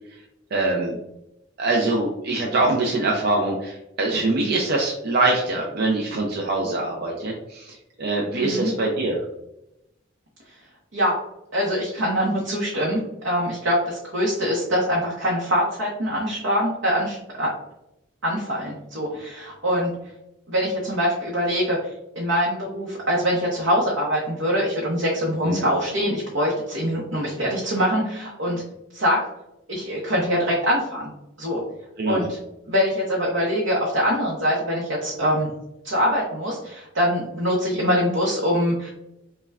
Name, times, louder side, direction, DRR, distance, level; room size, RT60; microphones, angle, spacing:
voice 1, 0.5-1.0 1.6-9.2 25.4-25.7 32.0-32.3, right 2 dB, 55° right, -1 dB, 0.5 m, -23 dB
voice 2, 8.3-8.7 10.9-11.2 11.5-13.0 13.2-17.5 18.2-19.9 20.5-28.6 28.9-29.2 29.7-31.1 31.4-31.6 32.1-32.4 32.7-35.5 35.8-38.9, equal, 80° right, -4 dB, 0.8 m, -23 dB
5.4 x 2.2 x 2.3 m, 0.88 s
head